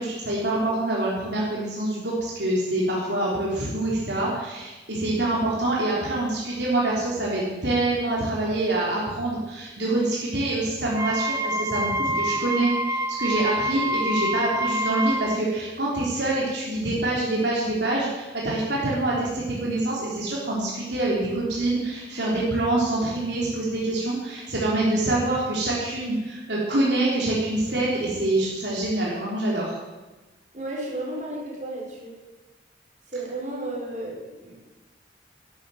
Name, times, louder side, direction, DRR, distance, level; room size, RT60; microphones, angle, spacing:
voice 1, 0.0-29.8, right 2 dB, 70° right, -5 dB, 3.6 m, -25 dB
Wind instrument woodwind instrument, 10.9-15.4, right 1 dB, 15° right, 0.8 m, -27 dB
voice 2, 30.5-32.2 33.1-34.5, right 1 dB, 45° right, -3 dB, 5.1 m, -33 dB
12.0 x 12.0 x 7.8 m, 1.2 s
head